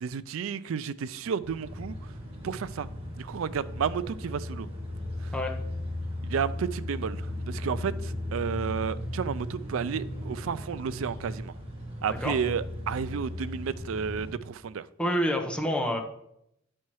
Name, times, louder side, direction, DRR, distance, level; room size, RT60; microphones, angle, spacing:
voice 1, 0.0-1.9 2.4-2.9 3.2-4.7 5.2-5.3 6.2-11.5 12.0-14.8, right 6 dB, 75° right, 16 dB, 0.4 m, -32 dB
sound 1, 1.4-14.3, left 1 dB, 30° right, 2.1 m, -36 dB
voice 2, 15.0-16.0, equal, 5° left, 2 dB, 0.9 m, -27 dB
9.4 x 4.4 x 4.7 m, 0.78 s
head